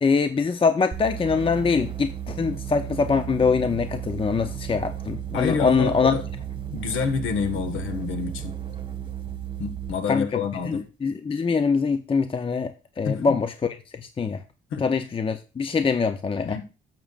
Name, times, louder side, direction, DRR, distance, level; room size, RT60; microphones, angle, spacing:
voice 1, 0.0-6.2 10.1-10.4 10.7-12.7 13.0-13.5 14.2-14.4 14.8-16.6, left 5 dB, 25° left, 9 dB, 0.6 m, -23 dB
sound 1, 0.9-10.0, right 10 dB, 25° right, 1.8 m, -34 dB
voice 2, 5.3-6.2 6.7-8.5 9.6-10.8 13.0-13.4 14.7-14.9 16.4-16.7, left 6 dB, 85° left, 8 dB, 1.5 m, -27 dB
12.5 x 7.6 x 2.4 m, 0.33 s
cardioid pair, 90°, 20 cm